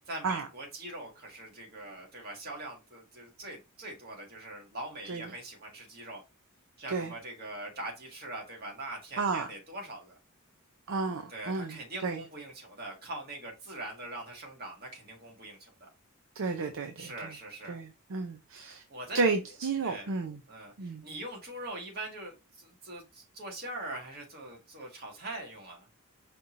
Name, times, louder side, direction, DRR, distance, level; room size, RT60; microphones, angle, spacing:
voice 1, 0.1-6.2 6.8-10.2 11.3-15.9 17.0-17.8 18.9-19.2 19.8-20.1 20.5-25.9, right 1 dB, 45° right, 1.6 m, -42 dB
voice 2, 9.2-9.5 10.9-12.2 16.4-17.3 17.7-18.8 19.1-20.4 20.8-21.0, right 4 dB, 60° right, 0.5 m, -32 dB
5.1 x 2.9 x 2.5 m
head